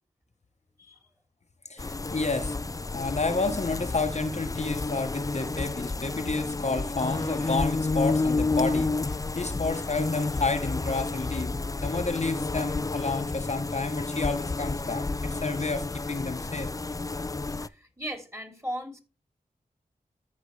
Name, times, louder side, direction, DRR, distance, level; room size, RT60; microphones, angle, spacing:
voice 1, 1.7-2.6 2.9-16.7, left 3 dB, 45° left, 1.0 m, -30 dB
sound 1, 1.8-17.7, left 3 dB, 25° left, 0.4 m, -30 dB
voice 2, 17.6-19.0, right 1 dB, 20° right, 3.1 m, -37 dB
14.0 x 5.2 x 3.2 m
cardioid pair, 45°, 15 cm